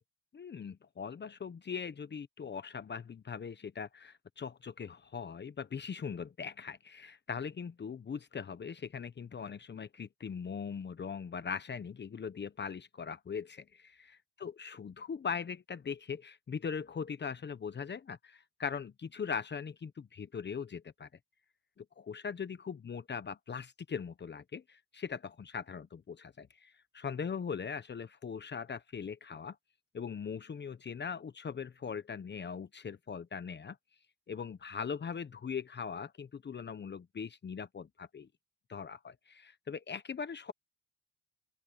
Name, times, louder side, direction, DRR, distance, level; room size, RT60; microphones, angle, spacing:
voice 1, 0.3-21.1 21.8-29.6 29.9-33.8 34.3-38.3 38.7-40.5, left 6 dB, 35° left, 1.0 m, -40 dB
open air
cardioid pair, 90°, 30 cm